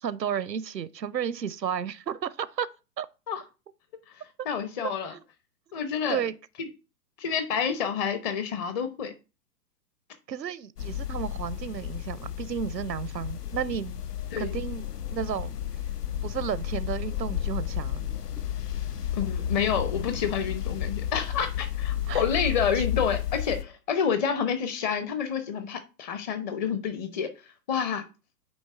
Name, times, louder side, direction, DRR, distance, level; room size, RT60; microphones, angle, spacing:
voice 1, 0.0-2.7 3.0-3.1 5.1-5.2 6.1-6.3 10.3-14.0 14.4-15.5 16.2-18.0 22.1-22.2 22.7-22.8, right 8 dB, 85° right, 0.6 m, -32 dB
voice 2, 4.4-5.1 5.7-6.2 6.6-6.7 7.2-9.1 14.3-14.5 19.1-27.3 27.7-28.0, left 7 dB, 30° left, 0.8 m, -28 dB
sound 1, 10.8-23.6, left 10 dB, 70° left, 0.8 m, -32 dB
8.8 x 3.1 x 4.4 m
figure-of-eight pair, 115°, 49 cm